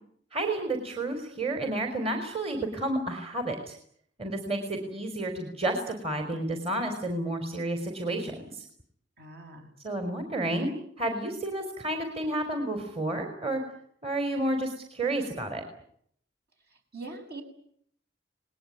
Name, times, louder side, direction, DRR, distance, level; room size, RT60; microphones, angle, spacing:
voice 1, 0.3-3.8 4.2-8.6 9.8-10.7 11.0-13.6 14.0-15.6, right 1 dB, 35° right, 5 dB, 4.0 m, -31 dB
voice 2, 9.2-9.7 16.9-17.4, right 3 dB, 60° right, 4 dB, 6.8 m, -42 dB
28.5 x 20.5 x 9.6 m, 0.67 s
head